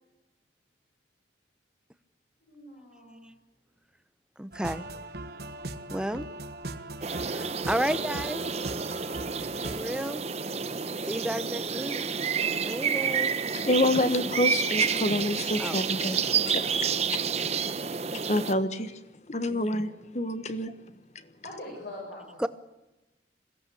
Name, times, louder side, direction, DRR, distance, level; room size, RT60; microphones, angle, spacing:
voice 1, 2.4-3.3 16.6-17.1 21.4-22.5, left 1 dB, 70° left, 8.0 m, -44 dB
voice 2, 4.4-4.8 5.9-6.3 7.1-8.4 9.6-10.2 11.0-12.0 12.6-13.3 15.6-15.8 19.5-19.7 22.4-22.5, equal, 5° right, 0.8 m, -32 dB
sound 1, 4.5-9.8, right 2 dB, 60° right, 1.3 m, -39 dB
sound 2, 7.0-18.5, right 6 dB, 35° right, 0.9 m, -29 dB
voice 3, 13.5-16.8 17.4-17.6 18.1-19.0 19.3-20.7, left 1 dB, 40° left, 1.3 m, -28 dB
21.5 x 16.5 x 8.7 m
head